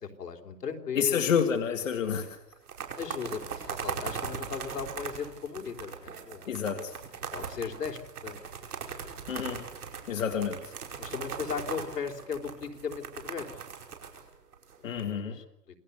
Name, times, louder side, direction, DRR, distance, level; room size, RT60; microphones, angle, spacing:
voice 1, 0.0-1.3 3.0-6.5 7.3-8.4 9.2-9.4 11.0-13.5 15.2-15.4, left 6 dB, 70° left, 5 dB, 3.7 m, -36 dB
voice 2, 0.9-2.3 6.5-6.9 9.3-9.6 10.1-10.6 14.8-15.4, left 7 dB, 50° left, 4 dB, 2.2 m, -28 dB
sound 1, 1.4-1.8 2.1-2.2 2.5-15.0, right 6 dB, 60° right, 5.4 m, -39 dB
27.5 x 19.5 x 6.9 m, 0.82 s
hypercardioid pair, 165°, 50 cm